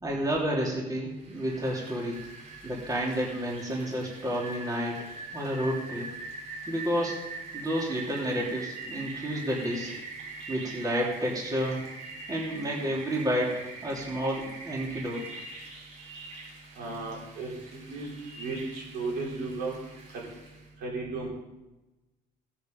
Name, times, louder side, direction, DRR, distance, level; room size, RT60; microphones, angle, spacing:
voice 1, 0.0-2.2 2.6-5.0 5.3-6.1 6.7-9.9 10.5-11.8 12.3-15.3, equal, 20° right, -3 dB, 3.1 m, -30 dB
Rain, 1.2-20.6, right 3 dB, 40° right, 5.6 m, -43 dB
voice 2, 16.8-18.1 18.4-19.8 20.1-20.2 20.8-21.3, right 3 dB, 75° right, -3 dB, 4.8 m, -35 dB
17.5 x 7.2 x 5.3 m, 1.0 s
cardioid pair, 110°, 17 cm